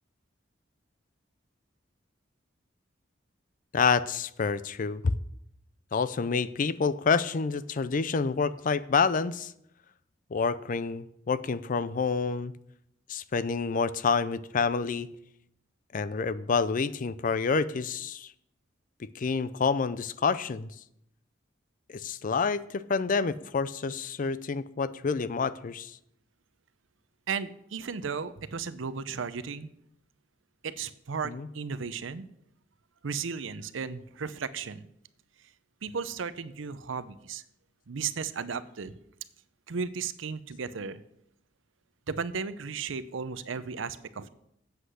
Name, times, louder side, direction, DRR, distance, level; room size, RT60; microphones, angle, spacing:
voice 1, 3.7-5.1 5.9-9.5 10.3-12.5 13.1-15.1 15.9-18.3 19.2-20.7 21.9-25.9 31.2-31.5, left 5 dB, 45° left, 16 dB, 0.4 m, -28 dB
voice 2, 27.3-29.7 30.6-32.3 33.0-34.9 35.8-37.4 37.9-39.0 39.7-41.0 42.1-44.3, right 5 dB, 85° right, 14 dB, 0.6 m, -35 dB
8.1 x 7.8 x 6.3 m, 0.76 s
head